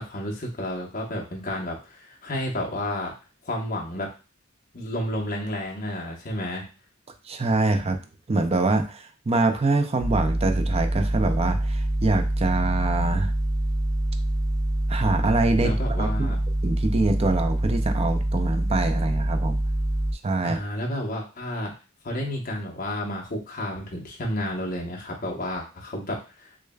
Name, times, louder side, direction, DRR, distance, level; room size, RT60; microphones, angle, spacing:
voice 1, 0.0-3.1 3.4-4.1 4.7-6.7 15.6-16.4 20.4-21.7 22.0-26.5, left 1 dB, 45° left, -2 dB, 1.0 m, -31 dB
voice 2, 7.3-8.0 8.3-13.3 14.9-15.7 16.0-16.3 16.6-19.6 20.2-20.6, right 2 dB, 30° right, 6 dB, 0.4 m, -24 dB
sound 1, 10.0-20.1, right 1 dB, 80° right, 0.7 m, -25 dB
6.4 x 2.2 x 2.3 m, 0.32 s
head